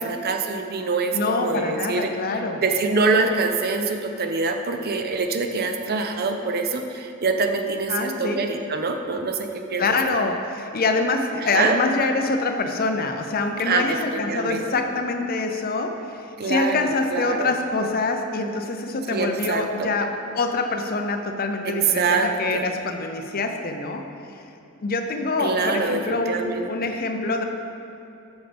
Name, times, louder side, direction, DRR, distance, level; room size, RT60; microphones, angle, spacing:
voice 1, 0.0-10.0 11.4-11.8 13.6-14.7 16.4-17.5 19.1-19.9 21.7-22.7 25.4-26.7, right 4 dB, 45° right, 5 dB, 0.6 m, -25 dB
voice 2, 1.1-2.6 7.9-8.4 9.8-20.1 20.3-24.0 24.8-27.4, left 3 dB, 45° left, 5 dB, 0.6 m, -25 dB
13.5 x 5.3 x 3.4 m, 2.8 s
head